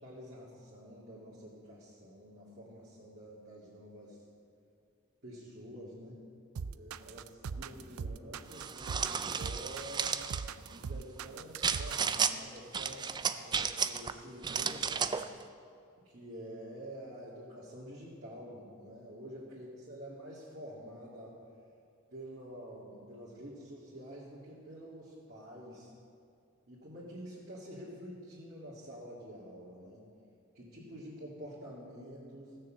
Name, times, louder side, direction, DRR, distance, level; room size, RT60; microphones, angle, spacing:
voice 1, 0.0-4.2 5.2-6.2 6.6-10.2 10.7-15.3 16.0-21.4 22.1-25.9 26.7-30.0 30.5-32.6, equal, 50° right, -9 dB, 2.3 m, -48 dB
sound 1, 6.6-12.2, right 5 dB, 85° right, 0.4 m, -40 dB
sound 2, 8.5-10.4 11.6-12.3 12.7-14.1 14.4-15.3, right 6 dB, 20° right, 0.3 m, -33 dB
15.5 x 6.6 x 7.5 m, 2.4 s
head